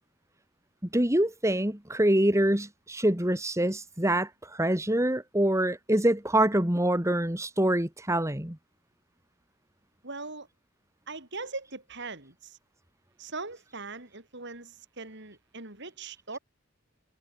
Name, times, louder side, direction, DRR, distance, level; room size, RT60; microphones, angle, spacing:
voice 1, 0.9-8.6, right 1 dB, 15° right, 2.3 m, -25 dB
voice 2, 10.0-10.5 11.1-12.6 13.2-16.4, right 3 dB, 55° right, 5.3 m, -40 dB
head